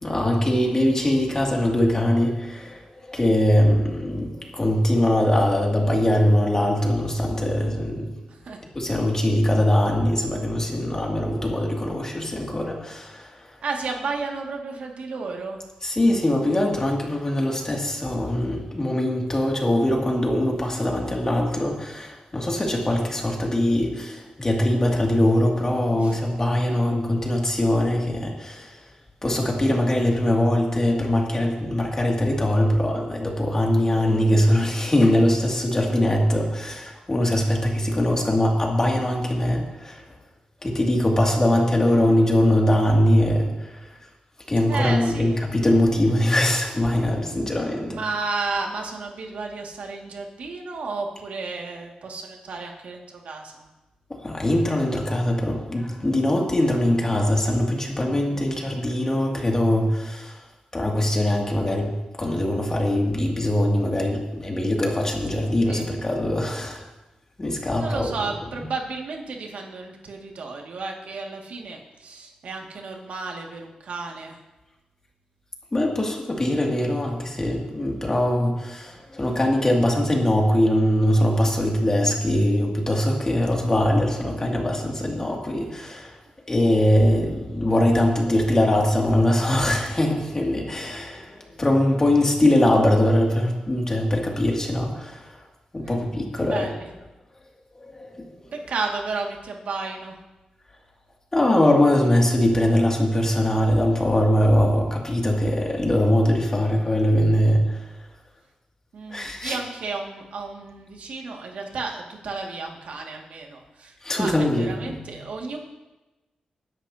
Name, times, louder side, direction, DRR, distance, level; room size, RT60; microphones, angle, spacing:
voice 1, 0.0-8.1 8.7-13.4 15.8-28.8 29.2-40.0 40.6-43.7 44.5-48.0 54.1-60.4 60.7-66.8 67.4-68.1 68.6-68.7 75.7-86.2 86.5-95.4 95.7-96.7 97.8-98.3 101.3-107.9 109.1-109.6 114.0-115.2, left 1 dB, 25° left, -1 dB, 2.4 m, -22 dB
voice 2, 8.3-8.6 13.6-15.6 25.9-26.2 26.7-26.8 40.9-41.4 44.7-45.4 47.8-53.7 58.1-58.6 65.7-65.9 67.8-74.4 82.2-82.5 95.8-96.0 96.5-96.9 98.5-100.2 108.9-115.6, right 4 dB, 75° right, 1 dB, 2.1 m, -33 dB
21.0 x 10.5 x 2.8 m, 1.1 s
wide cardioid pair, 105°, 2 cm